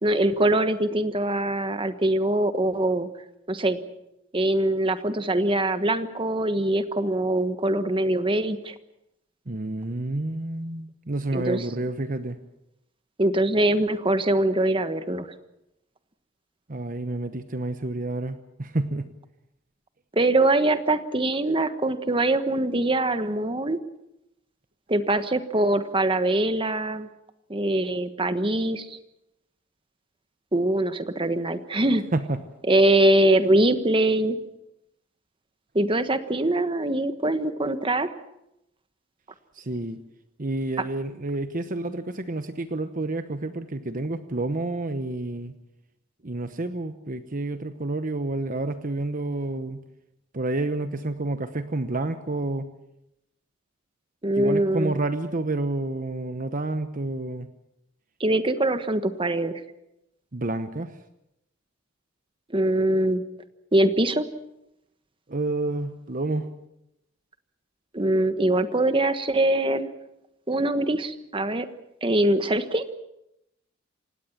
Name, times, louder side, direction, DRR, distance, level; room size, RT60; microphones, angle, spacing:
voice 1, 0.0-3.1 3.5-3.8 4.3-8.7 11.3-11.6 13.2-15.3 20.1-23.8 24.9-27.1 27.5-29.0 30.5-32.0 32.7-34.4 35.7-38.1 54.2-54.9 58.2-59.6 62.5-63.2 63.7-64.3 67.9-69.9 70.5-71.7 72.0-72.9, right 1 dB, 25° right, 10 dB, 1.3 m, -23 dB
voice 2, 9.5-12.4 16.7-19.1 32.1-32.4 39.5-40.0 40.4-45.5 46.2-49.8 50.3-52.7 54.4-57.5 60.3-61.0 65.3-66.5, right 2 dB, 45° right, 9 dB, 1.0 m, -29 dB
28.0 x 17.0 x 7.4 m, 0.85 s
head